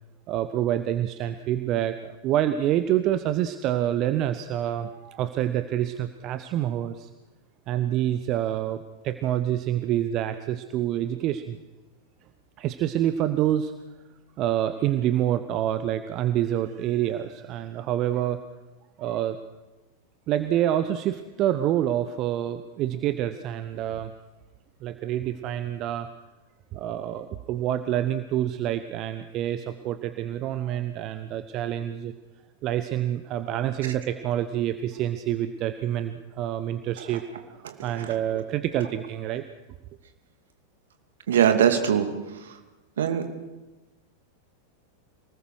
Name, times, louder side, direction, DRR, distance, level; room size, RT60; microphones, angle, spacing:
voice 1, 0.3-7.1 7.7-11.6 12.6-13.7 14.4-18.4 19.0-19.4 20.3-24.1 24.8-26.1 26.7-32.1 32.6-39.4, right 11 dB, 35° right, 10 dB, 1.0 m, -27 dB
voice 2, 37.6-38.1 41.3-42.1 42.3-42.5 43.0-43.2, right 9 dB, 60° right, 6 dB, 2.7 m, -22 dB
27.5 x 19.5 x 6.4 m, 1.1 s
figure-of-eight pair, 90°, 0 cm